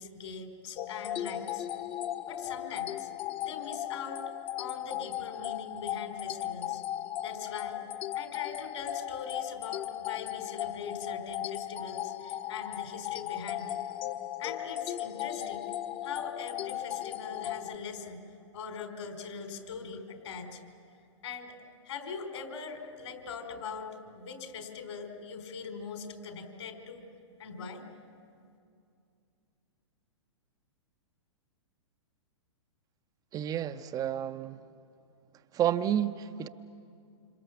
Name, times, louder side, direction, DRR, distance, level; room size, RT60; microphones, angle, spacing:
voice 1, 0.0-1.6 2.3-3.1 3.4-4.2 4.6-6.8 7.2-7.8 8.1-13.8 14.4-15.7 16.0-18.2 18.5-20.7 21.2-21.6 21.9-27.0 27.4-27.9, left 5 dB, 65° left, 5 dB, 4.6 m, -41 dB
sound 1, 0.8-17.7, left 12 dB, 35° left, 1.2 m, -37 dB
voice 2, 33.3-34.6 35.5-36.5, right 10 dB, 25° right, 9 dB, 0.6 m, -30 dB
27.5 x 26.5 x 7.3 m, 2.5 s
hypercardioid pair, 110°, 16 cm